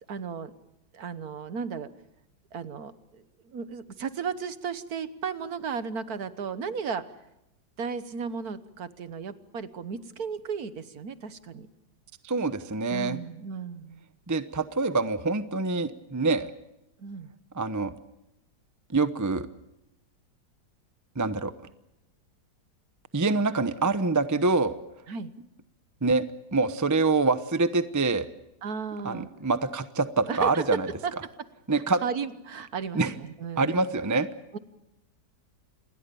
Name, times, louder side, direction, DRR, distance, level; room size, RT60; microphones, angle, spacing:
voice 1, 0.1-0.5 0.9-1.9 2.5-7.0 7.8-11.7 12.9-14.0 17.0-17.3 25.1-25.3 28.6-29.3 30.3-30.6 31.0-31.1 31.7-33.8 34.5-34.6, right 6 dB, 60° right, 12 dB, 1.6 m, -35 dB
voice 2, 12.2-13.2 14.3-16.5 17.5-17.9 18.9-19.5 21.2-21.5 23.1-24.7 26.0-26.2 26.5-28.3 29.0-30.9 31.7-32.0 33.0-33.1 33.6-34.3, right 3 dB, 15° right, 11 dB, 0.6 m, -25 dB
27.5 x 21.0 x 7.0 m, 0.88 s
omnidirectional pair, 1.9 m